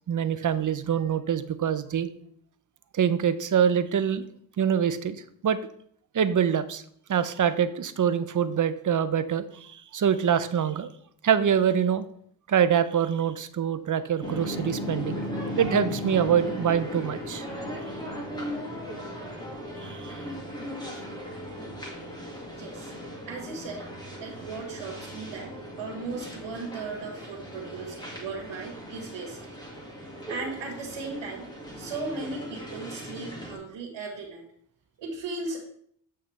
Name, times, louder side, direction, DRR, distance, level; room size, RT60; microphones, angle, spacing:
voice 1, 0.1-2.1 2.9-4.2 4.6-5.2 5.4-5.6 6.1-6.8 7.1-10.9 11.2-12.0 12.5-17.5 19.8-20.1, right 8 dB, 40° right, 12 dB, 0.7 m, -25 dB
sound 1, 14.2-33.6, equal, 10° left, 2.0 m, -37 dB
voice 2, 22.6-22.9 23.3-23.8 24.2-29.5 30.3-31.5 31.8-34.4 35.0-35.6, right 3 dB, 75° right, -5 dB, 2.0 m, -37 dB
8.2 x 5.6 x 3.2 m, 0.63 s
cardioid pair, 75°, 46 cm